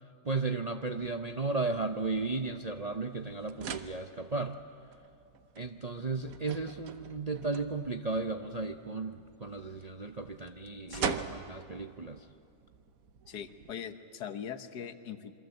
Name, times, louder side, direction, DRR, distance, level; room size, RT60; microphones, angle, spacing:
voice 1, 0.2-4.5 5.6-12.3, right 3 dB, 45° right, 6 dB, 0.5 m, -35 dB
sound 1, 0.8-13.7, right 7 dB, 65° right, 1.4 m, -44 dB
voice 2, 10.9-11.2 13.3-15.3, left 8 dB, 85° left, 10 dB, 1.7 m, -41 dB
27.0 x 23.0 x 7.9 m, 2.5 s
omnidirectional pair, 1.7 m